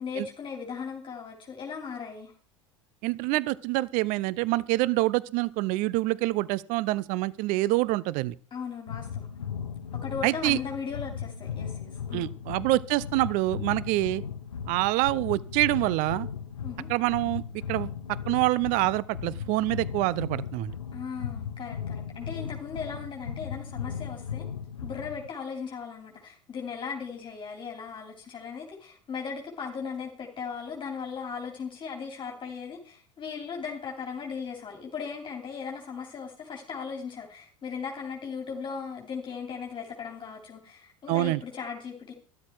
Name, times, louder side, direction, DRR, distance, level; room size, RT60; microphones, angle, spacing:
voice 1, 0.0-2.3 8.5-9.3 9.9-12.3 16.6-16.9 20.9-24.4 24.8-42.1, left 6 dB, 30° left, 2 dB, 3.1 m, -37 dB
voice 2, 3.0-8.3 10.2-10.6 12.1-14.2 14.7-16.3 16.9-17.4 17.7-17.9 18.3-20.7 41.1-41.4, right 19 dB, 50° right, 21 dB, 0.7 m, -26 dB
sound 1, 8.9-25.3, left 7 dB, 85° left, 0.9 m, -37 dB
12.5 x 12.0 x 4.6 m, 0.40 s
figure-of-eight pair, 75°, 16 cm